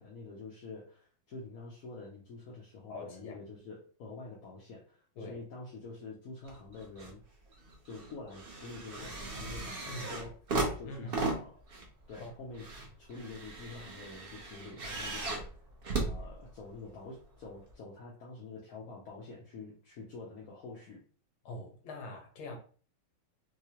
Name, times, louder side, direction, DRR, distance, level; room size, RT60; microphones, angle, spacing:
voice 1, 0.0-7.2 7.8-10.4 10.8-11.5 12.1-12.7 13.0-15.6 15.9-21.0, left 3 dB, 55° left, -4 dB, 1.0 m, -47 dB
voice 2, 2.9-3.4 5.2-5.4 9.9-10.1 10.9-11.2 12.2-12.3 21.5-22.6, left 2 dB, 80° left, 2 dB, 1.8 m, -43 dB
sound 1, 6.4-7.2 7.5-16.9 17.7-17.8, right 2 dB, 80° right, 0.5 m, -37 dB
4.8 x 2.2 x 2.9 m, 0.41 s
omnidirectional pair, 2.2 m